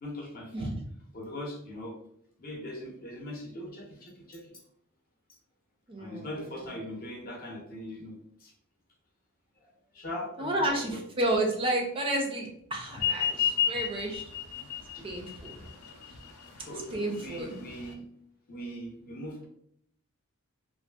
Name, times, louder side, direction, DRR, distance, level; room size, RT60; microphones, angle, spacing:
voice 1, 0.0-0.7 1.1-1.9 2.4-4.5 6.0-8.1 8.4-8.5 9.9-11.0 14.9-15.0 16.6-18.1 18.5-19.5, left 1 dB, 45° left, 0 dB, 0.6 m, -40 dB
voice 2, 0.5-0.9 5.9-6.7 10.4-14.2 15.0-15.5 16.9-17.5, right 1 dB, 25° right, 1 dB, 0.4 m, -31 dB
sound 1, 12.9-17.9, left 9 dB, 90° left, 0.5 m, -32 dB
2.6 x 2.4 x 2.2 m, 0.70 s
head